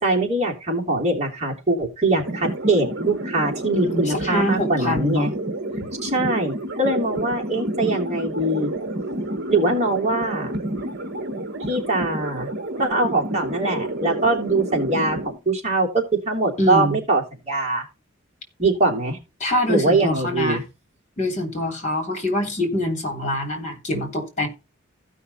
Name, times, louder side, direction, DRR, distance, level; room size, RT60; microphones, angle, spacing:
voice 1, 0.0-5.3 6.0-8.7 9.5-10.5 11.7-12.5 12.8-17.8 18.6-19.2 19.7-20.6, right 2 dB, 35° right, 3.1 m, -22 dB
sound 1, 2.2-15.3, right 1 dB, 50° right, 1.7 m, -29 dB
voice 2, 3.7-5.3 16.6-17.0 19.4-20.6 21.2-24.5, left 1 dB, 35° left, 3.2 m, -24 dB
15.5 x 5.7 x 4.2 m
head